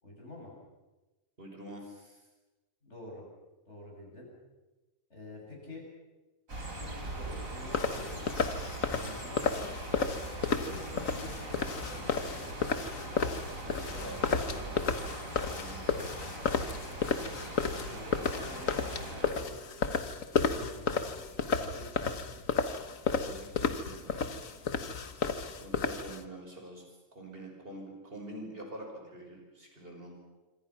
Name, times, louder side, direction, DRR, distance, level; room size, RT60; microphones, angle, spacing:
voice 1, 0.0-0.5 2.8-3.3 3.7-4.3 5.1-5.9 6.7-8.4 9.0-9.6 10.6-13.2 13.6-14.7 17.8-18.1 18.3-20.0 20.3-22.2, left 2 dB, 55° left, -1 dB, 7.9 m, -47 dB
voice 2, 1.4-2.2 9.4-9.7 10.5-10.8 14.0-14.3 15.3-15.8 23.1-24.4 25.6-30.1, right 1 dB, 45° right, 2 dB, 6.0 m, -46 dB
sound 1, 6.5-19.3, right 1 dB, 90° right, 5.2 m, -41 dB
sound 2, 7.7-26.2, left 5 dB, 80° left, 1.7 m, -32 dB
26.5 x 25.5 x 6.0 m, 1.1 s
omnidirectional pair, 1.4 m